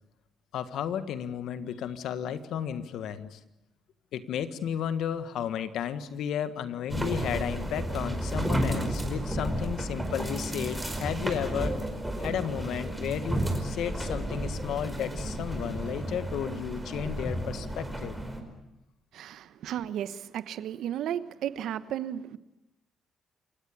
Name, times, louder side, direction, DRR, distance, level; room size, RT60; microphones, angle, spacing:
voice 1, 0.5-3.4 4.1-11.8 12.2-18.2, left 9 dB, 80° left, 11 dB, 1.6 m, -33 dB
sound 1, 6.9-18.4, right 1 dB, 10° right, 5.0 m, -32 dB
voice 2, 19.1-22.4, right 10 dB, 80° right, 14 dB, 1.1 m, -34 dB
28.5 x 17.0 x 8.6 m, 0.89 s
cardioid pair, 90°, 0 cm